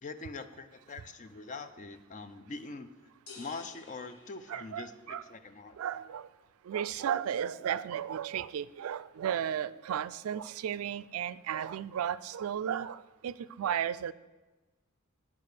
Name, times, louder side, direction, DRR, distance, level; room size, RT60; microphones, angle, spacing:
voice 1, 0.0-2.9 3.4-5.7, left 3 dB, 35° left, 10 dB, 0.5 m, -43 dB
sound 1, 3.3-5.3, left 3 dB, 80° left, 1.5 m, -53 dB
voice 2, 4.5-5.2 5.8-6.3 6.7-14.1, right 9 dB, 80° right, 18 dB, 0.3 m, -34 dB
8.7 x 4.8 x 6.5 m, 1.1 s
head